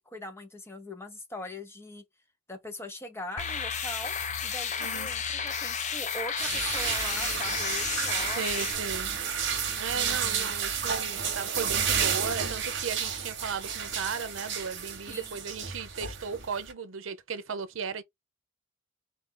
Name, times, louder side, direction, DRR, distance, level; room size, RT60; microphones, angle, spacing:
voice 1, 0.0-2.0 2.5-4.1 4.4-8.7 9.0-9.2 9.9-10.5 15.1-15.3, left 1 dB, 15° left, 1.0 m, -42 dB
sound 1, 3.4-8.8, left 6 dB, 35° left, 0.7 m, -32 dB
sound 2, 6.4-16.7, right 7 dB, 60° right, 1.1 m, -31 dB
voice 2, 8.4-9.1 9.8-18.0, right 5 dB, 75° right, 0.6 m, -36 dB
4.1 x 2.7 x 3.6 m
head